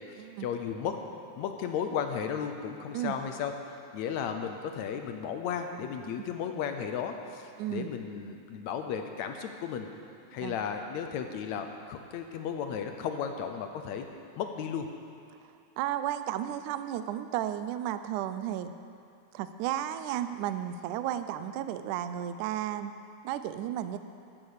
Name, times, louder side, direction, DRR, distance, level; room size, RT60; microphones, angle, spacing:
voice 1, 0.1-1.0 1.4-3.5 3.9-9.9 10.3-14.1 14.4-14.9, left 7 dB, 75° left, 6 dB, 1.8 m, -34 dB
voice 2, 7.6-7.9 10.4-10.6 15.8-18.7 19.3-23.0 23.2-24.0, right 11 dB, 80° right, 11 dB, 1.9 m, -33 dB
12.5 x 10.5 x 6.5 m, 2.5 s
omnidirectional pair, 3.8 m